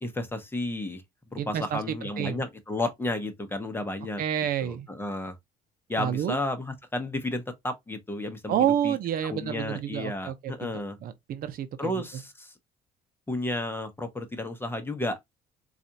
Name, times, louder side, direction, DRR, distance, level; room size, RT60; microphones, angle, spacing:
voice 1, 0.0-1.0 1.3-4.2 4.6-5.4 5.9-9.0 9.2-11.0 11.8-12.5 13.3-15.2, left 2 dB, 15° left, 0.8 m, -32 dB
voice 2, 1.4-1.8 2.2-2.4 4.2-4.9 6.0-6.4 8.5-10.5 11.0-11.9, right 10 dB, 60° right, 0.6 m, -28 dB
4.1 x 2.4 x 2.7 m
cardioid pair, 110°, 17 cm